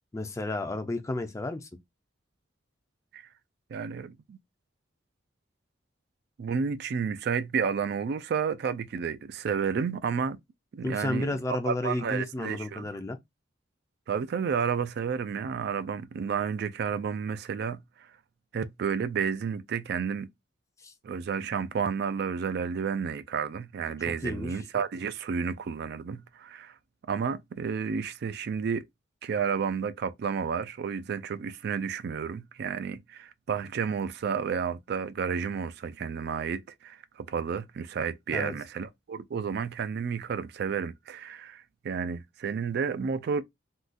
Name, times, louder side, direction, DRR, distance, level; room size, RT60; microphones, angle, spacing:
voice 1, 0.1-1.7 10.8-13.2 20.8-20.9 24.2-24.5 38.3-38.5, left 2 dB, 15° left, 0.4 m, -32 dB
voice 2, 3.7-4.4 6.4-10.4 10.7-12.9 14.1-18.1 18.5-20.3 21.0-26.7 27.1-28.8 29.2-43.4, right 6 dB, 60° right, 0.3 m, -31 dB
3.7 x 2.3 x 2.5 m
head